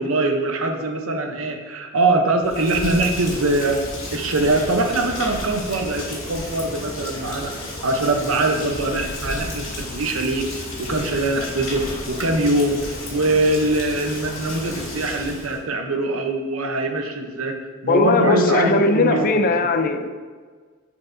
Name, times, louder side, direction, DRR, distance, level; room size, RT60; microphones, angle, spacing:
voice 1, 0.0-3.8 4.1-7.5 7.8-17.6 17.8-19.7, right 2 dB, 85° right, 4 dB, 0.8 m, -22 dB
Rain, 2.4-15.6, left 1 dB, 75° left, 1.8 m, -33 dB
voice 2, 17.9-20.1, left 3 dB, 45° left, 8 dB, 0.4 m, -19 dB
9.6 x 4.6 x 2.6 m, 1.5 s
head